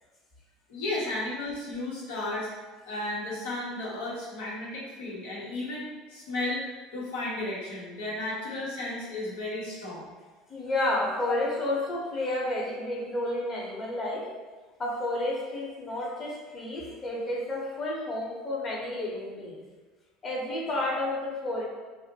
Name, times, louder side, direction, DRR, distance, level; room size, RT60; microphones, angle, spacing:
voice 1, 0.7-2.5 2.8-6.6 6.9-10.1, left 2 dB, 85° left, -6 dB, 0.8 m, -34 dB
voice 2, 10.5-14.2 14.8-19.6 20.2-21.6, left 1 dB, 35° left, -4 dB, 0.8 m, -31 dB
2.5 x 2.0 x 2.7 m, 1.3 s
supercardioid pair, 90°, 0 cm